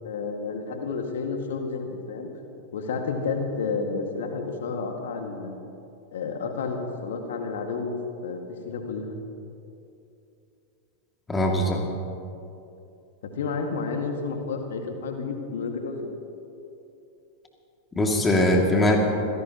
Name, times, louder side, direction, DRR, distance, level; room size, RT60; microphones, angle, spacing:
voice 1, 0.0-2.3 2.7-5.5 6.1-9.2 13.2-16.1, left 4 dB, 60° left, 4 dB, 2.0 m, -31 dB
voice 2, 11.3-11.9 18.0-19.0, left 1 dB, 15° left, 1 dB, 2.5 m, -21 dB
26.0 x 17.0 x 3.0 m, 2.7 s
figure-of-eight pair, 90°, 0 cm